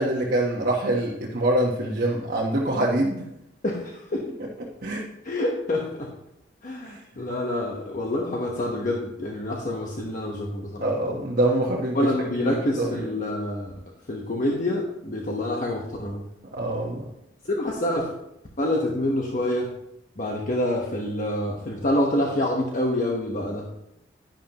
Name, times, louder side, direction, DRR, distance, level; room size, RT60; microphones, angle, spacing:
voice 1, 0.0-3.2 4.4-4.5 4.8-5.0 6.8-7.0 10.8-12.1 12.4-13.1 16.5-17.0, right 1 dB, 55° right, -4 dB, 1.2 m, -25 dB
voice 2, 5.2-6.1 6.6-10.8 11.9-13.7 14.1-16.2 17.4-18.1 18.6-19.7 20.2-23.7, left 1 dB, 45° left, 0 dB, 1.1 m, -27 dB
10.5 x 10.5 x 3.0 m, 0.80 s
head